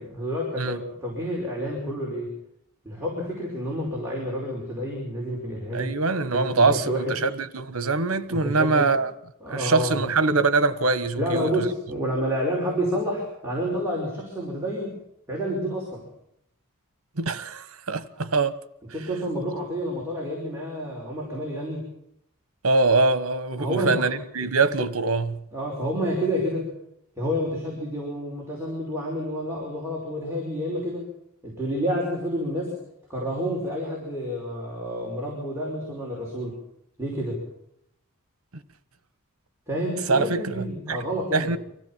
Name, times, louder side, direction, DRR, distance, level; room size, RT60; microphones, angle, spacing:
voice 1, 0.0-2.3 2.8-5.9 6.3-7.2 8.3-8.9 9.4-10.0 11.2-15.0 15.3-16.0 18.9-21.9 23.6-24.1 25.5-26.7 27.2-31.1 31.4-32.8 33.1-36.6 37.0-37.4 39.7-41.5, equal, 10° right, 5.3 m, -29 dB
voice 2, 5.7-9.1 9.5-11.7 17.2-18.5 22.6-25.4 40.1-40.4 40.9-41.0 41.3-41.6, right 3 dB, 80° right, 1.3 m, -23 dB
25.0 x 15.5 x 7.4 m
head